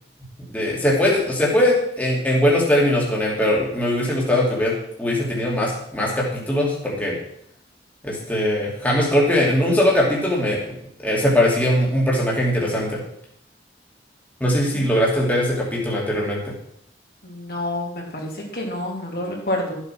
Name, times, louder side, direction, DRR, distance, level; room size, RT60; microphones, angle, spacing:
voice 1, 0.5-4.7 5.0-7.2 8.0-10.7 11.0-13.0 14.4-16.5, left 1 dB, 10° left, -4 dB, 2.6 m, -20 dB
voice 2, 17.2-19.8, left 1 dB, 55° left, -1 dB, 3.1 m, -28 dB
13.0 x 8.1 x 6.0 m, 0.69 s
head